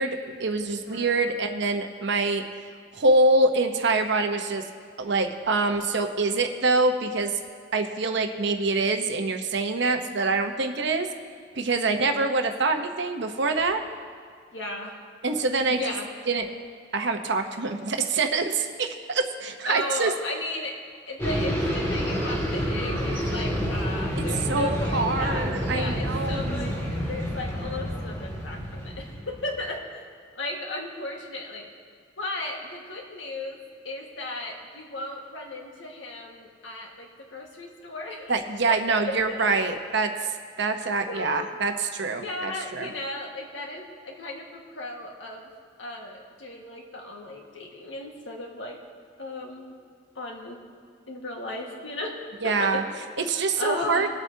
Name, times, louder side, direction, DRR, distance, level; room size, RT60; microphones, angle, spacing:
voice 1, 0.0-2.4 2.9-4.6 5.0-7.3 7.7-11.1 11.5-13.8 15.2-15.8 16.3-16.5 16.9-20.1 24.5-26.8 38.3-40.1 40.6-42.9 52.4-52.8 53.3-54.1, right 3 dB, 65° right, 5 dB, 0.9 m, -25 dB
voice 2, 11.8-12.4 14.5-14.9 15.6-16.1 19.7-20.8 21.1-29.8 30.4-31.7 32.2-33.6 33.9-38.3 38.7-38.8 39.1-39.6 41.1-41.5 42.1-45.5 45.8-48.8 49.2-49.7 50.2-50.6 51.1-52.8 53.6-54.1, left 2 dB, 80° left, 0 dB, 1.7 m, -35 dB
sound 1, 21.2-29.5, equal, 15° left, 2.1 m, -28 dB
22.0 x 8.0 x 2.8 m, 2.1 s
head